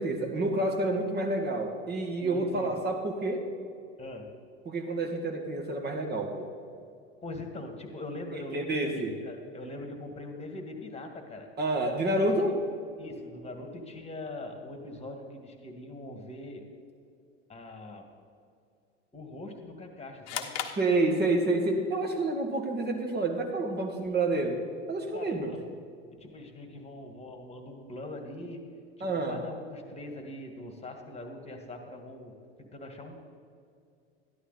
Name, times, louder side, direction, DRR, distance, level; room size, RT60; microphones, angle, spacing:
voice 1, 0.0-3.5 4.7-6.5 8.3-9.1 11.6-12.6 20.8-24.6 24.9-25.6 29.0-29.5, right 2 dB, 30° right, 3 dB, 2.0 m, -29 dB
voice 2, 2.2-2.7 4.0-4.3 7.2-8.9 9.2-11.5 12.3-12.6 13.0-16.7 17.5-18.1 19.1-20.5 25.1-25.6 26.1-28.7 29.0-33.2, left 2 dB, 20° left, 4 dB, 1.9 m, -42 dB
sound 1, 20.3-21.7, left 9 dB, 45° left, 1.1 m, -37 dB
13.0 x 11.0 x 4.1 m, 2.4 s
hypercardioid pair, 85°, 35 cm